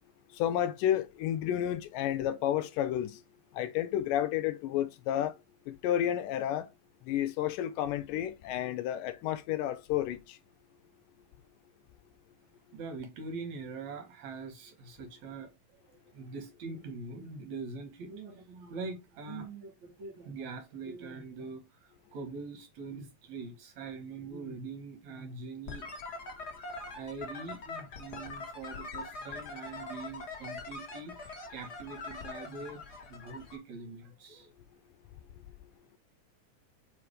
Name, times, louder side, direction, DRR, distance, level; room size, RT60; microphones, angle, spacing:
voice 1, 0.3-3.2 3.5-5.3 5.7-6.7 7.1-10.4, left 11 dB, 80° left, 2.0 m, -31 dB
voice 2, 12.7-25.9 26.8-34.5, right 4 dB, 65° right, 2.2 m, -43 dB
sound 1, 25.7-33.6, left 3 dB, 55° left, 1.1 m, -43 dB
5.0 x 4.7 x 4.8 m
omnidirectional pair, 4.0 m